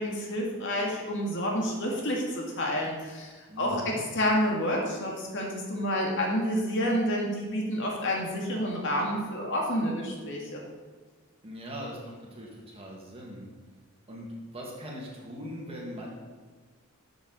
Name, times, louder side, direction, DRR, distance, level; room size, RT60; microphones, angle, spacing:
voice 1, 0.0-10.6, equal, 55° left, -1 dB, 1.9 m, -29 dB
voice 2, 3.5-4.0 11.4-13.5 14.1-16.1, equal, 25° right, -2 dB, 2.0 m, -40 dB
11.5 x 6.9 x 4.1 m, 1.4 s
head